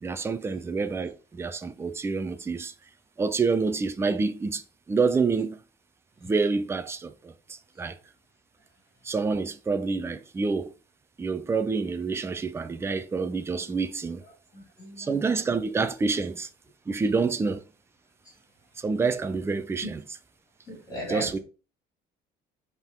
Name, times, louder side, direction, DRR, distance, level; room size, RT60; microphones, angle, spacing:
voice 1, 0.0-2.7 3.2-4.6 4.9-5.6 6.2-7.3 7.8-8.0 9.0-10.7 11.2-14.2 15.0-16.5 16.9-17.6 18.8-20.0 21.1-21.4, right 4 dB, 15° right, 0.5 m, -27 dB
voice 2, 14.5-15.2 20.7-21.4, equal, 20° left, 3.4 m, -37 dB
7.9 x 3.7 x 4.5 m
cardioid pair, 150°, 17 cm